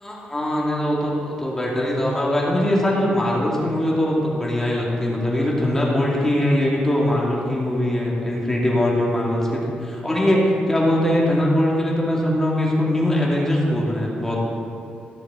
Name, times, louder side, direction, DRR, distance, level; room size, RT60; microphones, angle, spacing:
voice 1, 0.0-10.4 10.7-14.4, left 1 dB, 10° left, -4 dB, 2.3 m, -21 dB
14.0 x 6.5 x 4.5 m, 2.6 s
cardioid pair, 105°, 3 cm